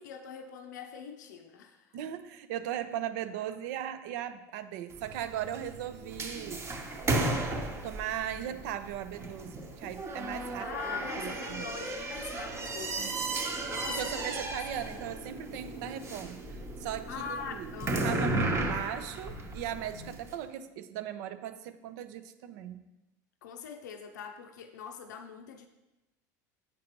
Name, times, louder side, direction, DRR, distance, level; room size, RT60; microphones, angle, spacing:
voice 1, 0.0-2.0 10.6-13.0 13.3-14.5 14.7-14.8 17.1-18.3 23.4-25.7, left 6 dB, 85° left, 6 dB, 0.5 m, -42 dB
voice 2, 1.9-6.7 7.8-11.6 12.9-13.4 13.9-17.7 18.0-22.8, right 11 dB, 70° right, 10 dB, 0.5 m, -38 dB
sound 1, 4.9-20.3, right 2 dB, 30° right, 1.0 m, -35 dB
7.4 x 5.0 x 3.0 m, 0.97 s
hypercardioid pair, 85°, 9 cm